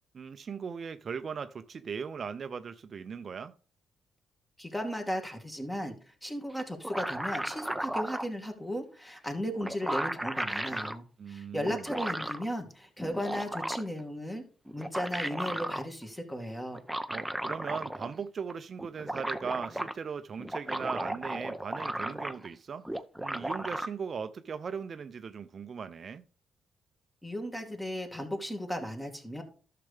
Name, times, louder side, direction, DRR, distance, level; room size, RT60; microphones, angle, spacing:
voice 1, 0.1-3.5 11.2-11.8 17.1-22.8 23.2-26.2, right 6 dB, 50° right, 0.6 m, -38 dB
voice 2, 4.6-14.4 14.7-16.8 27.2-29.4, equal, 10° left, 2.3 m, -36 dB
sound 1, 6.6-8.3 9.3-9.4 9.6-11.0 11.6-12.5 13.0-14.0 14.7-15.9 16.7-18.2 18.5-18.6 18.8-19.9 20.4-22.5 22.9-23.9, right 1 dB, 5° right, 0.8 m, -35 dB
12.0 x 6.7 x 3.4 m
cardioid pair, 70°, 0 cm